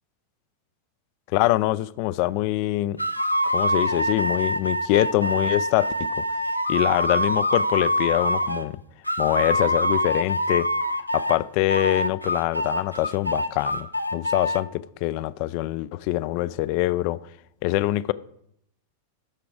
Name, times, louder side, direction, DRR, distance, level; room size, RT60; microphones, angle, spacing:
voice 1, 1.3-3.0 3.5-6.2 6.7-8.8 9.2-10.7 11.1-17.2 17.6-18.1, left 17 dB, 45° left, 0.4 m, -24 dB
sound 1, 3.0-8.7 9.0-11.4 11.7-14.6, equal, 90° left, 0.6 m, -25 dB
12.5 x 5.9 x 4.8 m
figure-of-eight pair, 90°, 0 cm